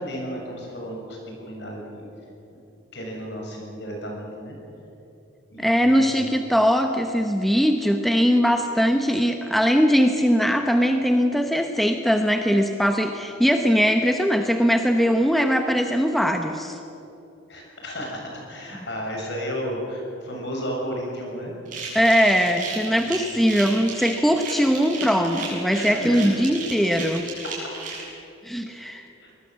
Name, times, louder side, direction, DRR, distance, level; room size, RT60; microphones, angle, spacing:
voice 1, 0.0-2.1 2.9-4.6 5.5-6.3 17.5-21.5 23.0-23.2 25.0-25.4 25.7-26.2 27.4-27.6 29.2-29.3, equal, 60° left, 0 dB, 6.8 m, -33 dB
voice 2, 5.6-16.8 21.9-27.3 28.4-29.1, equal, ahead, 5 dB, 1.0 m, -21 dB
sound 1, 21.7-28.0, right 4 dB, 40° right, 7.3 m, -34 dB
24.5 x 20.0 x 7.6 m, 2.9 s
head